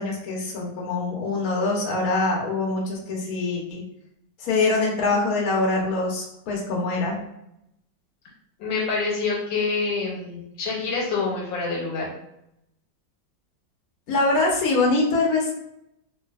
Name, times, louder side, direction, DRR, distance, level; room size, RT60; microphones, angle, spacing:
voice 1, 0.0-3.8 4.4-7.2 14.1-15.5, left 3 dB, 60° left, -2 dB, 1.1 m, -24 dB
voice 2, 8.6-12.1, left 4 dB, 80° left, -2 dB, 1.6 m, -26 dB
3.2 x 2.6 x 2.4 m, 0.80 s
omnidirectional pair, 2.1 m